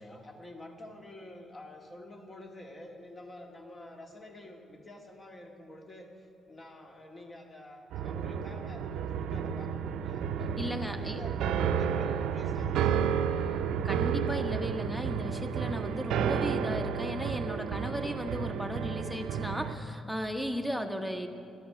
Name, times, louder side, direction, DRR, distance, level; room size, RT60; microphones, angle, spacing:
voice 1, 0.0-10.3 10.9-13.3, left 1 dB, 30° left, 2 dB, 2.0 m, -49 dB
sound 1, 7.9-19.8, right 7 dB, 85° right, 0.6 m, -31 dB
voice 2, 10.6-11.2 13.8-21.3, equal, ahead, 7 dB, 1.0 m, -35 dB
13.5 x 11.5 x 5.9 m, 2.7 s
cardioid pair, 90°, 0 cm